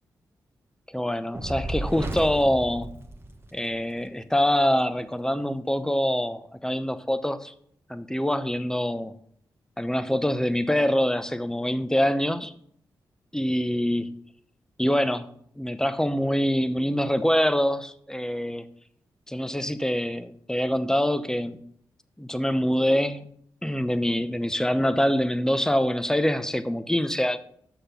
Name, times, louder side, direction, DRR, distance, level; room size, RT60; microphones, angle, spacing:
voice 1, 0.9-2.9 3.5-7.5 7.9-9.1 9.8-12.5 13.3-14.1 14.8-15.3 15.6-18.6 19.3-21.6 22.2-23.2 23.6-27.4, equal, 5° left, 0.8 m, -25 dB
Fire, 1.3-3.8, right 1 dB, 25° right, 1.2 m, -33 dB
6.4 x 6.0 x 5.5 m
supercardioid pair, 40°, 9 cm